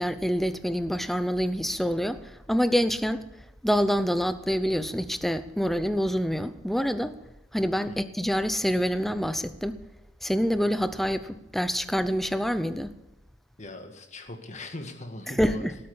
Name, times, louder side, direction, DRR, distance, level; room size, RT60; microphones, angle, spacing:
voice 1, 0.0-3.2 3.6-7.2 7.5-9.8 10.2-12.9 15.3-15.8, equal, ahead, 0.6 m, -26 dB
voice 2, 13.6-15.7, left 2 dB, 40° left, 1.8 m, -40 dB
18.0 x 8.6 x 7.0 m
head